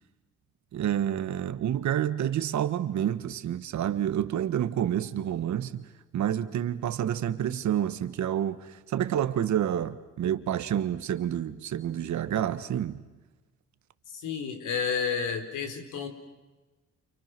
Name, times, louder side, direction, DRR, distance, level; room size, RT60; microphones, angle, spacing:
voice 1, 0.7-5.8 6.1-13.0, right 10 dB, 70° right, 1.6 m, -29 dB
voice 2, 14.1-16.1, left 6 dB, 80° left, 4.4 m, -31 dB
29.5 x 29.5 x 6.2 m
cardioid pair, 90°, 30 cm